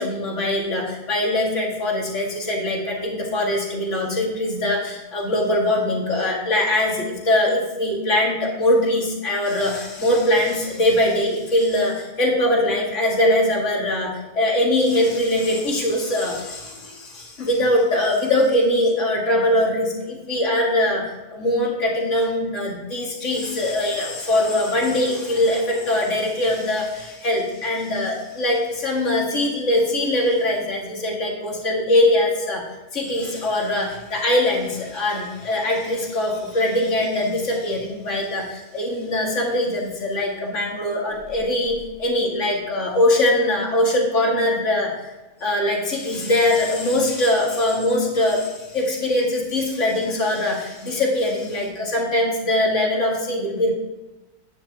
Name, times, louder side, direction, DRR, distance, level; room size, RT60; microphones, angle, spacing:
voice 1, 0.0-21.0 21.3-32.6 32.9-44.9 45.4-53.7, left 1 dB, 55° left, -1 dB, 2.3 m, -22 dB
10.0 x 10.0 x 2.9 m, 1.1 s
omnidirectional pair, 1.6 m